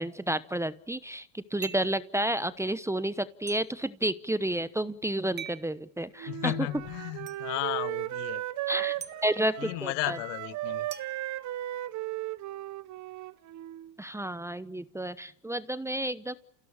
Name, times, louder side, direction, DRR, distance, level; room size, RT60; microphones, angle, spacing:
voice 1, 0.0-6.5 8.7-8.9 9.2-10.2 14.0-16.3, right 1 dB, 5° right, 15 dB, 0.9 m, -31 dB
sound 1, 1.6-2.0 3.5-3.6 5.4-5.7 7.3-7.4 9.0-9.2 10.9-12.0, right 8 dB, 20° right, 1.5 m, -43 dB
Wind instrument woodwind instrument, 6.2-13.9, right 15 dB, 40° right, 0.9 m, -36 dB
voice 2, 6.3-8.4 9.1-9.3 9.6-10.9, left 18 dB, 75° left, 17 dB, 1.4 m, -34 dB
28.5 x 16.5 x 8.8 m, 0.72 s
supercardioid pair, 115°, 48 cm